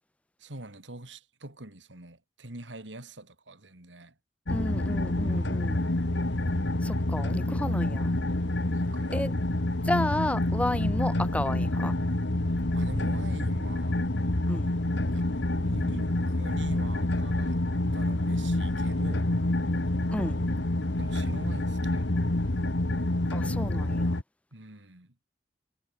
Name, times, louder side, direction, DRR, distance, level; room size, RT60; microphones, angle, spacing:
voice 1, 0.4-4.1 5.2-5.6 8.5-9.2 10.7-10.8 12.7-14.0 15.1-17.6 17.9-19.4 21.0-22.1 24.5-25.1, right 1 dB, 90° right, 3.3 m, -44 dB
sound 1, 4.5-24.2, left 1 dB, 80° left, 1.7 m, -27 dB
voice 2, 4.5-5.8 6.8-8.1 9.1-9.3 9.8-11.9 14.5-14.7 20.1-20.4 23.3-24.2, left 1 dB, 5° left, 0.6 m, -32 dB
head